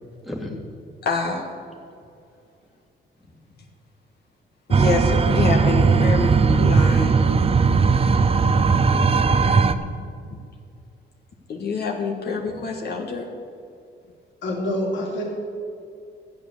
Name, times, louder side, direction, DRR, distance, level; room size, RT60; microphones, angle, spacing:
voice 1, 0.3-0.6 6.3-6.9 7.9-8.2 8.9-10.1, left 1 dB, ahead, -1 dB, 1.8 m, -34 dB
voice 2, 1.0-1.5 4.7-7.1 11.5-13.3, left 4 dB, 55° left, 0 dB, 1.6 m, -26 dB
sound 1, 4.7-9.7, right 5 dB, 30° right, 0.6 m, -18 dB
voice 3, 14.4-15.2, left 1 dB, 70° left, -2 dB, 3.1 m, -26 dB
12.0 x 8.5 x 6.8 m, 2.4 s
cardioid pair, 90°, 20 cm